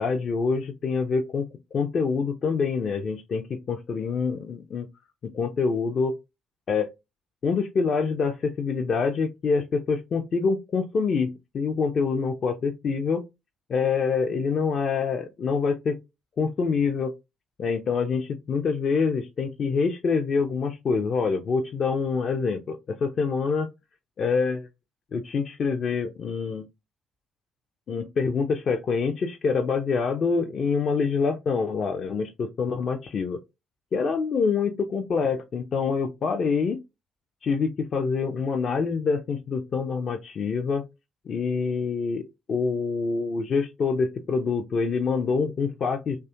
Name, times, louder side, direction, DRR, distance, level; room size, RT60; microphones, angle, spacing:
voice 1, 0.0-4.9 5.2-6.2 6.7-6.9 7.4-13.2 13.7-16.0 16.4-17.1 17.6-23.7 24.2-24.7 25.1-26.7 27.9-33.4 33.9-36.8 37.4-40.9 41.3-42.2 42.5-46.2, left 5 dB, 50° left, 0.4 m, -26 dB
2.6 x 2.3 x 2.5 m
figure-of-eight pair, 45°, 0 cm